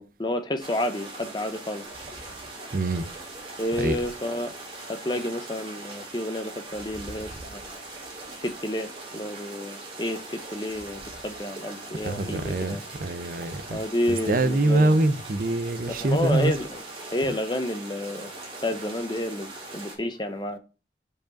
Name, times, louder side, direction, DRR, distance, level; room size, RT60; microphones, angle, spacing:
voice 1, 0.0-1.8 3.6-4.5 4.9-7.8 8.4-8.9 9.1-12.8 13.7-15.0 16.0-16.7 17.1-18.3 18.6-20.6, left 1 dB, 25° left, 0.7 m, -30 dB
sound 1, 0.6-19.9, right 2 dB, 30° right, 2.0 m, -41 dB
voice 2, 2.7-3.1 3.8-4.0 12.0-13.8 14.1-16.5, right 2 dB, 50° right, 0.6 m, -24 dB
5.1 x 4.9 x 5.1 m
head